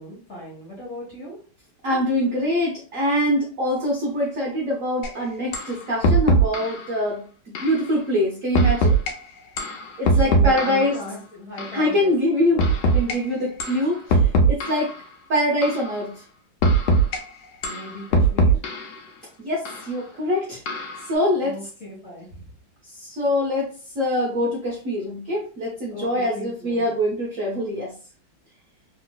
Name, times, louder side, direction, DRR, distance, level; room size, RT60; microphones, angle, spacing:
voice 1, 0.0-1.4 10.0-12.1 12.5-12.8 13.0-13.2 17.6-18.6 21.4-22.6 25.9-27.0, left 1 dB, 45° left, -5 dB, 1.0 m, -38 dB
voice 2, 1.8-9.0 10.0-11.0 11.7-14.9 15.3-16.2 19.4-20.6 21.1-21.6 22.9-27.9, left 1 dB, 65° right, -2 dB, 0.8 m, -24 dB
sound 1, 5.0-5.1 5.5-5.7 6.0-6.8 7.6-7.8 8.6-9.1 9.6-10.9 11.6-11.8 12.6-13.2 13.6-13.8 14.1-14.9 15.6-15.9 16.6-17.2 17.6-18.9 19.7-19.8 20.7-21.0, right 2 dB, 70° left, 1.1 m, -20 dB
3.2 x 3.0 x 2.2 m, 0.40 s
omnidirectional pair, 2.3 m